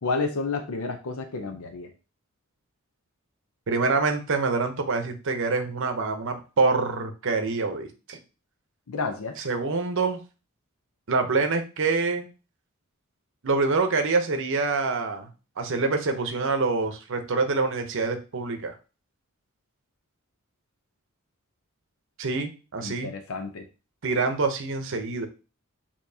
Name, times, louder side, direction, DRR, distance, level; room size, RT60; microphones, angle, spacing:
voice 1, 0.0-1.9 8.9-9.4 22.8-23.7, left 4 dB, 75° left, 5 dB, 0.6 m, -30 dB
voice 2, 3.7-8.2 9.4-10.2 11.1-12.3 13.4-15.3 15.6-18.7 22.2-23.1 24.0-25.3, right 3 dB, 60° right, 6 dB, 0.7 m, -26 dB
6.7 x 2.9 x 2.7 m, 0.33 s
head